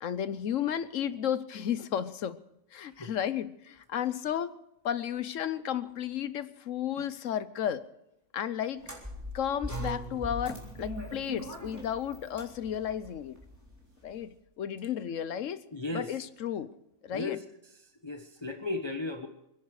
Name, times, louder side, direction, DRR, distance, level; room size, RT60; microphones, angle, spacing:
voice 1, 0.0-2.4 2.7-4.5 4.8-7.8 8.3-8.8 9.3-13.4 14.0-15.6 15.9-16.7 17.0-17.4, left 9 dB, 65° left, 15 dB, 1.1 m, -33 dB
sound 1, 8.8-14.0, equal, 10° right, 3.8 m, -40 dB
voice 2, 15.7-16.1 17.1-17.4 18.0-19.3, left 2 dB, 20° left, 5 dB, 1.0 m, -35 dB
27.0 x 10.5 x 4.8 m, 0.84 s
omnidirectional pair, 1.5 m